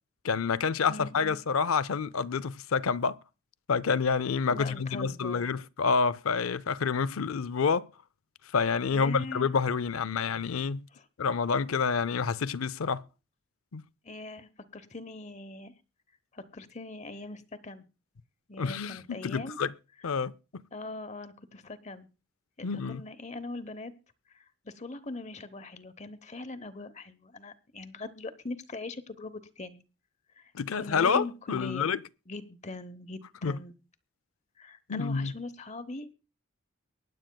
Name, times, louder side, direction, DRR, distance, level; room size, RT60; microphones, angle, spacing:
voice 1, 0.2-3.2 3.7-7.9 8.5-10.9 11.2-13.0 13.7-13.8 18.6-19.7 20.0-20.3 22.6-23.0 30.5-32.0 33.4-33.6 34.9-35.3, left 5 dB, 85° left, 0.5 m, -28 dB
voice 2, 0.9-1.4 4.5-5.5 8.9-9.5 10.9-11.1 14.0-15.8 16.3-17.8 18.5-19.6 20.7-22.1 22.6-23.9 24.3-29.8 30.4-31.9 32.3-33.8 34.6-36.1, left 2 dB, 35° left, 0.9 m, -41 dB
23.5 x 10.5 x 2.3 m
head